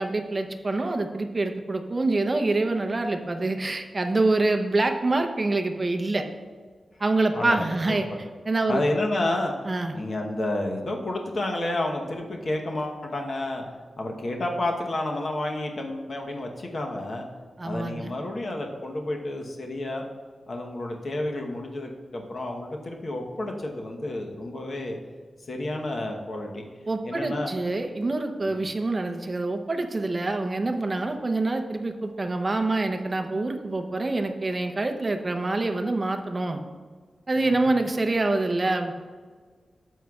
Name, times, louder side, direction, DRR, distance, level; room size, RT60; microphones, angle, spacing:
voice 1, 0.0-6.2 7.0-8.1 8.5-8.8 9.6-9.9 17.6-18.1 26.9-36.6 37.3-38.9, right 2 dB, 30° right, 5 dB, 0.7 m, -26 dB
voice 2, 7.3-8.0 8.7-9.5 9.9-13.6 14.0-17.3 17.6-20.0 20.5-25.0 25.5-26.7 27.0-27.5 28.4-28.6 37.4-37.7, left 1 dB, 50° left, 1 dB, 1.0 m, -30 dB
12.5 x 7.7 x 2.4 m, 1.5 s
wide cardioid pair, 155°, 0 cm